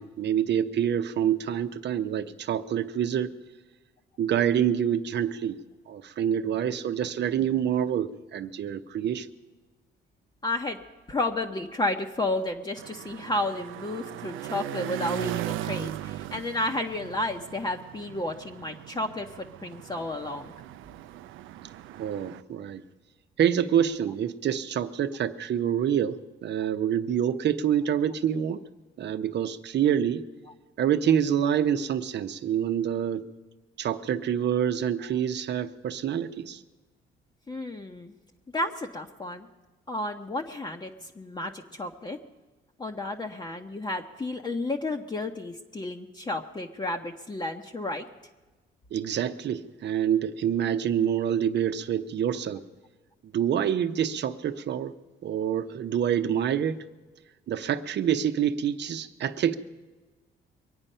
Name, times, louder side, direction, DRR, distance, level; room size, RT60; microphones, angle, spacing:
voice 1, 0.0-3.3 4.2-5.6 5.9-9.3 22.0-22.8 23.4-28.6 29.0-30.2 30.8-33.3 33.8-36.6 48.9-52.6 53.3-54.9 55.2-56.8 57.5-59.5, right 9 dB, 60° right, 0.8 m, -27 dB
voice 2, 10.4-10.8 11.1-20.5 37.5-38.2 38.5-39.5 39.9-42.2 42.8-48.0, left 2 dB, 20° left, 0.9 m, -32 dB
sound 1, 12.8-22.4, right 13 dB, 85° right, 0.5 m, -38 dB
23.0 x 8.9 x 5.5 m
cardioid pair, 90°, 20 cm